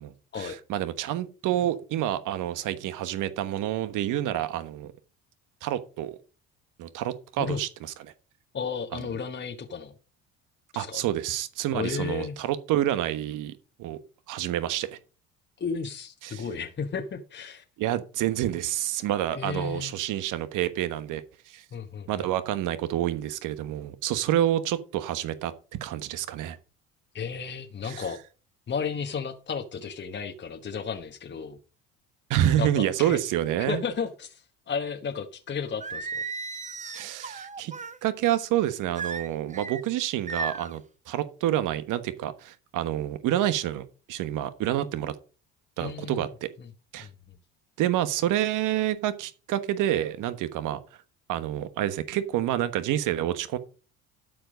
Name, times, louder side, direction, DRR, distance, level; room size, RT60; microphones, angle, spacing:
voice 1, 0.0-4.9 5.6-6.2 6.8-8.1 10.7-13.5 13.8-14.0 14.3-15.0 16.2-16.4 17.8-21.6 22.1-26.6 27.8-28.1 32.3-33.8 36.9-37.7 38.0-45.1 45.8-46.5 46.9-47.1 47.8-50.8 51.3-53.6, right 12 dB, 60° right, 1.3 m, -28 dB
voice 2, 8.5-9.9 10.7-11.0 11.7-12.4 15.6-17.6 19.3-19.9 21.7-22.3 27.1-28.2 28.7-31.6 32.6-33.2 33.7-36.2 45.8-46.3 46.6-46.7 47.0-47.1, left 6 dB, 30° left, 1.3 m, -33 dB
Singing, 35.8-38.0 39.0-39.8 40.3-40.8, right 4 dB, 20° right, 0.9 m, -35 dB
12.5 x 4.8 x 5.1 m
hypercardioid pair, 70°, 35 cm